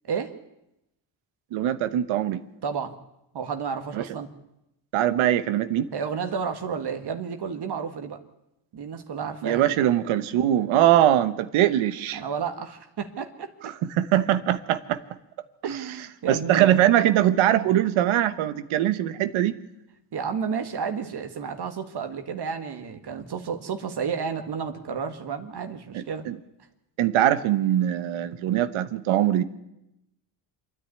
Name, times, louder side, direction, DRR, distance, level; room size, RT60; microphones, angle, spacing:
voice 1, 0.0-0.4 2.6-3.0 3.3-4.3 5.9-8.2 8.7-9.8 12.1-13.5 15.6-16.8 20.1-26.3, right 6 dB, 55° right, 6 dB, 1.9 m, -31 dB
voice 2, 1.5-2.4 3.9-4.0 4.9-5.9 9.4-12.2 13.6-15.0 16.3-19.5 25.9-26.4 27.0-29.4, right 12 dB, 90° right, 12 dB, 1.2 m, -22 dB
26.5 x 10.0 x 9.7 m, 0.89 s
cardioid pair, 90°, 47 cm